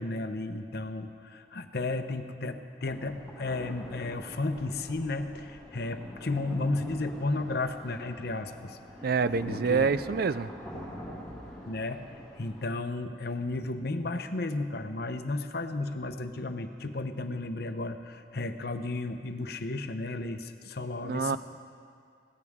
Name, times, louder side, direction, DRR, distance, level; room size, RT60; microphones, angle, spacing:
voice 1, 0.0-8.8 9.5-9.9 11.6-12.1 12.4-21.4, left 2 dB, 60° left, 8 dB, 0.8 m, -33 dB
sound 1, 2.8-12.7, equal, 5° left, 4.7 m, -45 dB
voice 2, 9.0-10.5 21.0-21.4, right 5 dB, 55° right, 14 dB, 0.4 m, -26 dB
23.0 x 16.5 x 3.6 m, 2.3 s
head